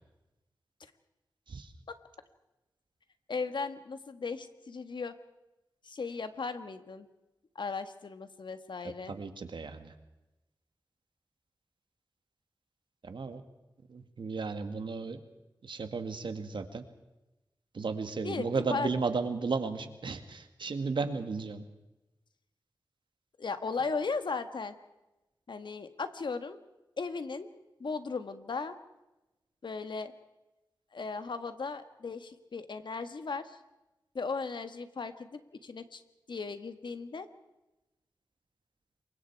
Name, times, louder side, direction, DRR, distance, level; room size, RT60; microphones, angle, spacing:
voice 1, 3.3-5.1 5.8-7.1 7.5-9.2 18.2-18.9 23.4-24.7 25.5-26.6 27.0-27.5 27.8-28.8 29.6-30.1 30.9-33.6 34.1-36.0 36.3-37.3, left 4 dB, 75° left, 10 dB, 1.6 m, -36 dB
voice 2, 9.0-9.9 13.0-13.4 13.9-15.2 15.6-16.8 17.7-21.7, right 4 dB, 85° right, 8 dB, 1.9 m, -34 dB
28.0 x 23.5 x 4.7 m, 0.99 s
wide cardioid pair, 75°, 8 cm